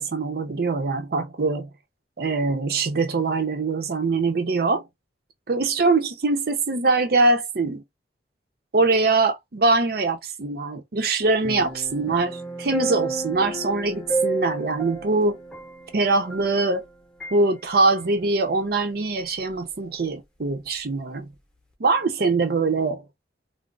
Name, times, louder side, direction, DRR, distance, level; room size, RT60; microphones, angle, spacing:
voice 1, 0.0-1.7 2.2-4.8 5.5-7.8 8.7-15.4 15.9-16.8 17.3-21.3 21.8-23.0, right 3 dB, 55° right, 0.6 m, -23 dB
sound 1, 11.4-16.9 17.2-17.4, right 3 dB, 5° left, 0.7 m, -31 dB
2.4 x 2.0 x 3.7 m
head